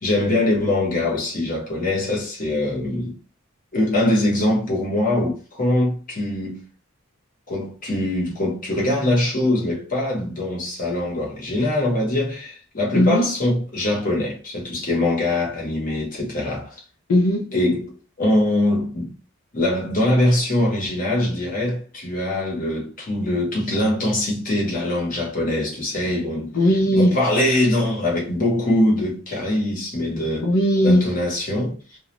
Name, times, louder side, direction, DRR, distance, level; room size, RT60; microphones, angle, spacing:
voice 1, 0.0-3.2 3.7-6.6 7.5-16.8 17.5-19.1 19.5-26.5 26.9-30.5 30.8-32.0, left 1 dB, 40° left, 1.0 m, -23 dB
voice 2, 12.9-13.3 17.1-17.5 26.5-27.1 30.4-31.1, equal, 80° left, 0.6 m, -17 dB
2.4 x 2.1 x 3.0 m
head